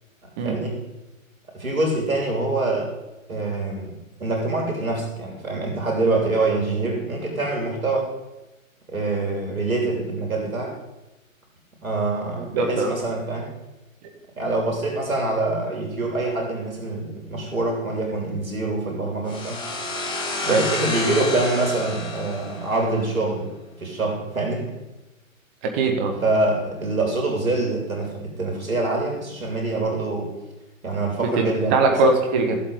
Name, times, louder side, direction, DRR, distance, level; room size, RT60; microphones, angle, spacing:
voice 1, 0.4-0.8 1.5-2.9 3.3-8.1 8.9-10.7 11.8-13.5 14.4-19.6 20.4-23.5 23.8-24.7 26.2-30.3 30.8-31.8, right 2 dB, 80° right, 1 dB, 3.2 m, -25 dB
voice 2, 12.5-12.9 20.5-20.6 25.6-26.2 31.2-32.6, right 3 dB, 10° right, 3 dB, 0.4 m, -21 dB
sound 1, 19.3-23.0, left 2 dB, 10° left, 1.6 m, -30 dB
14.0 x 7.5 x 4.9 m, 1.0 s
figure-of-eight pair, 130°, 41 cm